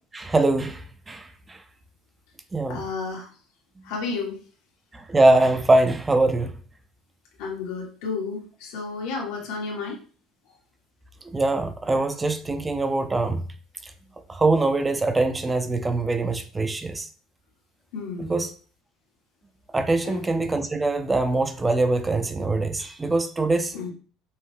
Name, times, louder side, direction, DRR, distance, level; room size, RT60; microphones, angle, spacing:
voice 1, 0.1-1.6 2.5-2.8 4.9-6.5 11.2-13.4 13.8-13.9 14.3-17.1 18.2-18.5 19.7-23.7, right 2 dB, 15° right, 0.3 m, -23 dB
voice 2, 2.7-3.3 3.8-4.4 7.4-10.0 17.9-18.4 20.0-20.2 23.7-23.9, left 4 dB, 85° left, 1.5 m, -31 dB
5.4 x 2.1 x 3.2 m
cardioid pair, 150°, 0 cm